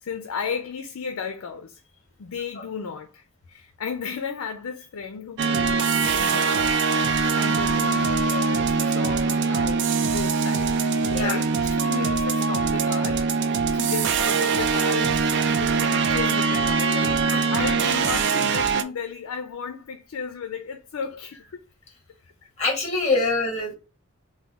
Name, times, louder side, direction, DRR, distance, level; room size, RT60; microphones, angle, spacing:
voice 1, 0.0-1.8 2.2-6.7 7.2-21.6 22.4-22.5 23.1-23.3, left 6 dB, 75° left, 0.4 m, -34 dB
sound 1, 5.4-18.8, right 5 dB, 55° right, 0.4 m, -22 dB
voice 2, 22.6-23.7, left 3 dB, 30° left, 1.4 m, -24 dB
3.4 x 2.2 x 3.9 m
head